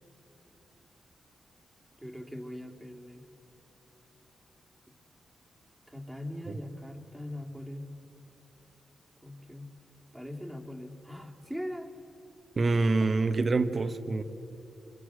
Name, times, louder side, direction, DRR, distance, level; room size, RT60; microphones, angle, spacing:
voice 1, 2.0-3.3 5.9-7.9 9.2-9.7 10.1-11.9, left 1 dB, ahead, 1 dB, 2.3 m, -41 dB
voice 2, 12.6-14.2, right 3 dB, 40° right, 10 dB, 1.2 m, -26 dB
26.5 x 24.5 x 8.0 m, 2.9 s
wide cardioid pair, 115°, 0 cm